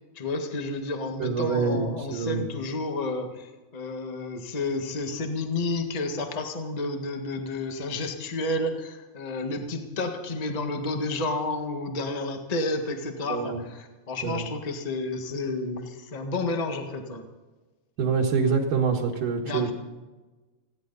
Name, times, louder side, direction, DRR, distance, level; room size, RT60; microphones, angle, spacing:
voice 1, 0.1-17.3 19.4-19.7, left 2 dB, 70° left, 4 dB, 0.3 m, -31 dB
voice 2, 1.2-2.5 13.3-13.6 14.2-14.4 18.0-19.7, right 5 dB, 75° right, -3 dB, 3.2 m, -26 dB
21.0 x 16.5 x 4.1 m, 1.2 s
omnidirectional pair, 4.0 m